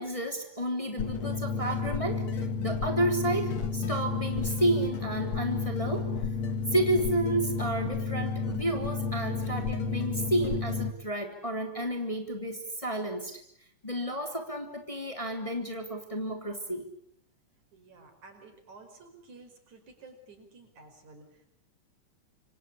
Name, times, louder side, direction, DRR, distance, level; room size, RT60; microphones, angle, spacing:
voice 1, 0.0-6.1 6.7-13.3 13.8-16.9, right 1 dB, 10° left, 4 dB, 3.1 m, -31 dB
sound 1, 1.0-10.9, left 4 dB, 65° left, 3.1 m, -31 dB
voice 2, 17.7-21.5, right 3 dB, 80° right, 6 dB, 6.4 m, -52 dB
27.5 x 25.0 x 8.6 m, 0.69 s
omnidirectional pair, 3.3 m